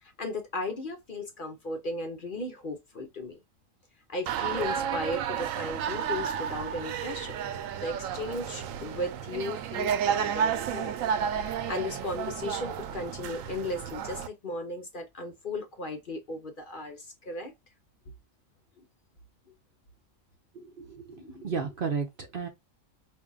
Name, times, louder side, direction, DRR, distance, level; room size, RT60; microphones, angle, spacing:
voice 1, 0.0-3.4 4.1-7.4 7.8-11.0 11.3-17.5 21.1-21.5, left 2 dB, 45° left, 0.8 m, -36 dB
sound 1, 4.3-14.3, right 8 dB, 80° right, 1.0 m, -32 dB
voice 2, 21.4-22.5, right 5 dB, 55° right, 0.7 m, -32 dB
5.1 x 2.6 x 2.3 m
omnidirectional pair, 1.4 m